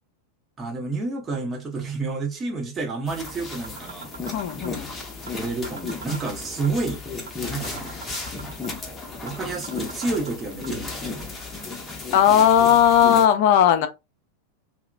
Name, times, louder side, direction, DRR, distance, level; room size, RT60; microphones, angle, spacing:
voice 1, 0.6-4.1 5.3-7.0 7.4-8.0 9.2-11.3, right 3 dB, 20° right, 0.8 m, -29 dB
sound 1, 2.8-2.9 3.3-3.4 3.6-4.8 5.3-5.4 5.6-6.8 7.3-7.4 7.6-8.8 9.3-9.4 9.6-10.7, right 5 dB, 65° right, 0.6 m, -40 dB
sound 2, 3.1-13.3, left 3 dB, 15° left, 0.8 m, -34 dB
voice 2, 4.3-4.9 12.1-13.9, left 10 dB, 50° left, 0.5 m, -17 dB
2.8 x 2.0 x 2.5 m
figure-of-eight pair, 90°, 0 cm